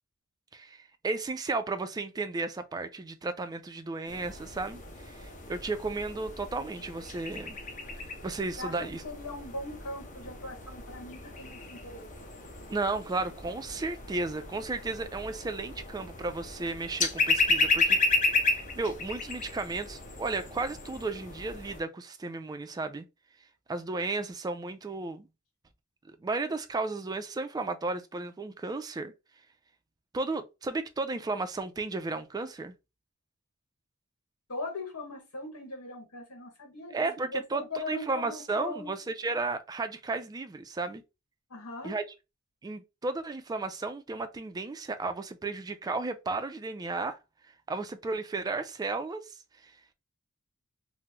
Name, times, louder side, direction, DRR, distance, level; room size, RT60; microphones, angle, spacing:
voice 1, 0.5-7.6 8.2-9.0 12.7-18.0 18.4-23.0 23.7-25.3 26.2-29.1 30.1-32.7 36.9-41.0 41.8-42.0 42.6-47.2 47.7-49.3, right 3 dB, 20° right, 0.3 m, -34 dB
sound 1, 4.1-21.8, left 3 dB, 35° left, 0.6 m, -33 dB
voice 2, 8.6-12.1 34.5-38.9 41.5-41.9, left 2 dB, 85° left, 1.1 m, -40 dB
2.9 x 2.0 x 3.4 m
head